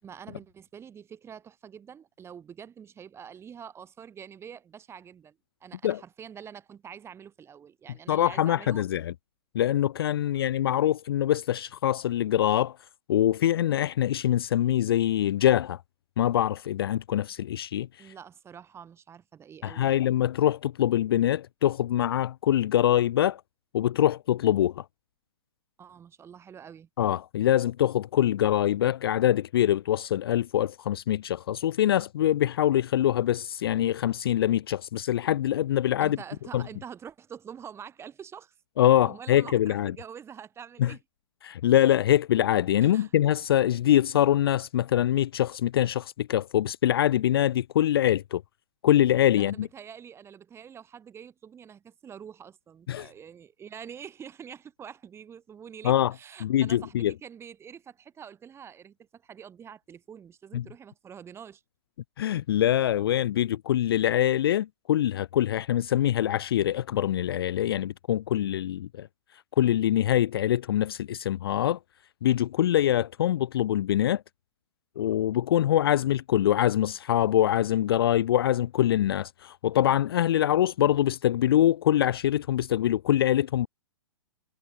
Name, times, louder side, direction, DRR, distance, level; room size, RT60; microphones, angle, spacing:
voice 1, 0.0-8.8 10.4-10.5 18.0-20.0 25.8-26.9 36.0-38.5 39.0-41.0 42.8-43.1 49.3-61.6, right 8 dB, 15° right, 5.4 m, -46 dB
voice 2, 8.1-9.1 9.5-12.8 13.1-15.8 16.2-18.1 19.6-23.4 23.7-24.8 27.0-36.2 36.5-36.6 38.8-39.9 40.8-40.9 41.4-48.4 48.8-49.7 52.9-53.1 55.8-56.1 56.4-57.1 60.5-60.6 62.2-69.1 69.6-71.8 72.2-74.2 75.0-83.7, left 12 dB, 50° left, 0.4 m, -24 dB
figure-of-eight pair, 110°, 15 cm